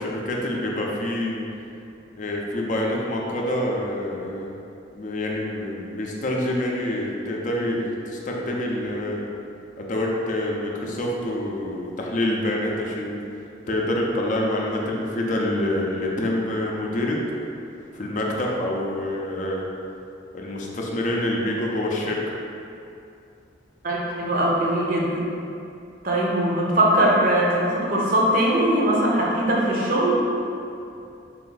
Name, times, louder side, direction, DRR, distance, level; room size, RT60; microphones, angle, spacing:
voice 1, 0.0-1.5 2.2-4.5 4.9-9.3 9.8-13.3 13.7-17.2 17.9-19.7 20.3-22.3, left 1 dB, 40° left, -2 dB, 0.5 m, -26 dB
voice 2, 23.8-25.3 26.0-30.2, right 1 dB, 50° right, -3 dB, 0.7 m, -21 dB
4.0 x 2.6 x 3.9 m, 2.6 s
head